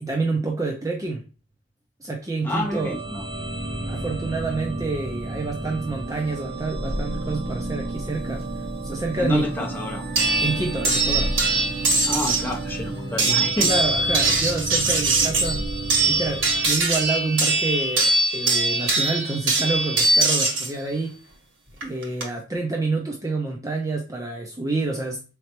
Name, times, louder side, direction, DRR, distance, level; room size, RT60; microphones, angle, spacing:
voice 1, 0.0-1.2 2.0-3.0 3.9-8.4 8.8-9.4 10.4-11.3 13.7-15.6 16.0-21.2 21.8-25.2, right 3 dB, 20° right, 0.5 m, -28 dB
voice 2, 2.4-3.2 9.2-10.0 12.1-13.7, left 1 dB, 10° left, 0.8 m, -28 dB
sound 1, 2.6-17.3, right 2 dB, 55° right, 0.9 m, -32 dB
sound 2, 10.2-12.5 13.2-20.7 21.8-22.2, right 3 dB, 85° right, 1.5 m, -22 dB
3.8 x 3.3 x 2.9 m
head